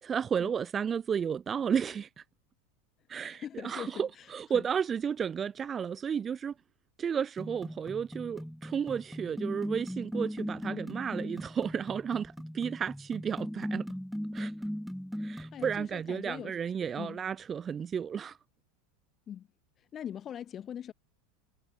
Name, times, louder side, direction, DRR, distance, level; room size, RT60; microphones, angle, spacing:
voice 1, 0.0-2.1 3.1-6.5 7.0-13.9 14.3-14.5 15.2-18.4, right 7 dB, 20° right, 1.5 m, -33 dB
voice 2, 3.3-4.7 15.5-16.6 17.0-17.2 19.3-19.5 19.8-20.9, left 9 dB, 25° left, 7.4 m, -42 dB
sound 1, 7.4-15.9, equal, ahead, 3.1 m, -38 dB
supercardioid pair, 160°, 0 cm